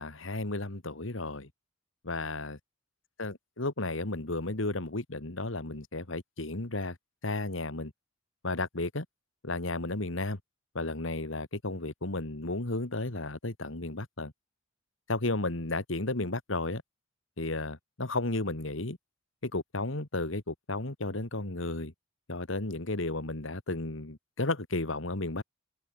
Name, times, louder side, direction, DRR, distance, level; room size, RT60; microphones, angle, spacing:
voice 1, 0.0-1.5 2.0-2.6 3.2-7.0 7.2-7.9 8.4-9.1 9.4-10.4 10.7-14.3 15.1-16.8 17.4-19.0 19.4-21.9 22.3-25.4, left 2 dB, 70° left, 2.1 m, -33 dB
head